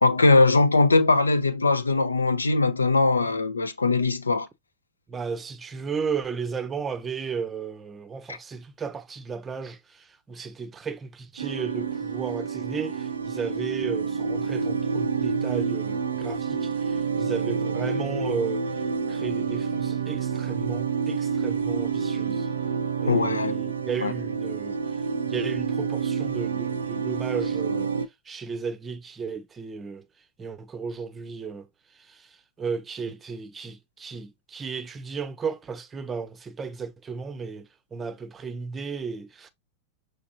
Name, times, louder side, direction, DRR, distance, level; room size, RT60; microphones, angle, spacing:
voice 1, 0.0-4.5 8.3-8.4 23.1-23.6 24.0-24.1, left 3 dB, 75° left, 0.5 m, -21 dB
voice 2, 5.1-18.6 19.1-22.5 23.0-24.8 25.3-27.9 28.3-30.1 30.4-31.7 31.9-39.5, right 5 dB, 20° right, 0.6 m, -34 dB
sound 1, 11.4-28.1, right 5 dB, 70° right, 0.5 m, -28 dB
5.9 x 3.3 x 2.4 m
figure-of-eight pair, 90°, 0 cm